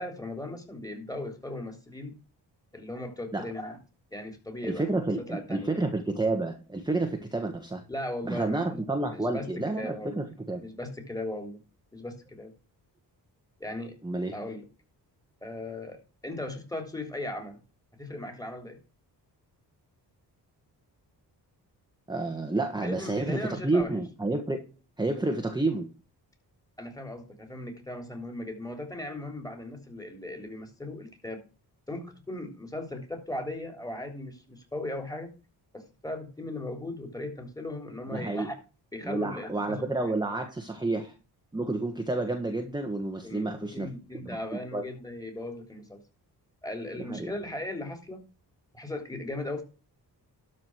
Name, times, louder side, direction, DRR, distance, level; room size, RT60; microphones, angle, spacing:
voice 1, 0.0-2.1 2.7-3.8 4.1-5.7 7.9-9.5 9.8-10.2 10.6-11.6 11.9-12.5 13.6-13.9 14.3-14.6 15.4-17.6 18.0-18.8 22.8-23.9 26.8-31.4 31.9-35.3 35.7-38.5 38.9-40.0 43.2-46.0 46.6-48.2 48.7-49.6, left 1 dB, 10° left, 3.4 m, -38 dB
voice 2, 4.6-7.8 8.2-10.7 14.0-14.4 22.1-24.6 25.0-25.9 38.1-38.5 39.0-41.1 41.5-43.9 44.2-44.4 44.7-44.8 47.1-47.3, right 2 dB, 10° right, 1.5 m, -30 dB
12.5 x 5.0 x 6.3 m
cardioid pair, 90°, 42 cm